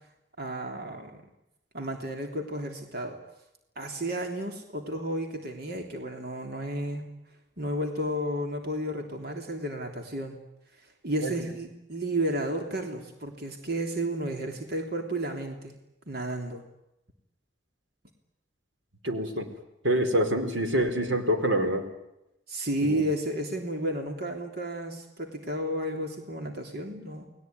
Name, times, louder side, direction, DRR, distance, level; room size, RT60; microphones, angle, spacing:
voice 1, 0.4-1.2 1.7-3.2 3.8-7.1 7.6-10.4 11.0-15.7 16.1-16.6 22.5-27.3, right 1 dB, 55° right, 3 dB, 3.3 m, -32 dB
voice 2, 19.0-19.5 19.8-21.9 22.8-23.0, right 1 dB, 85° right, 6 dB, 4.2 m, -26 dB
30.0 x 20.5 x 9.6 m, 0.90 s
head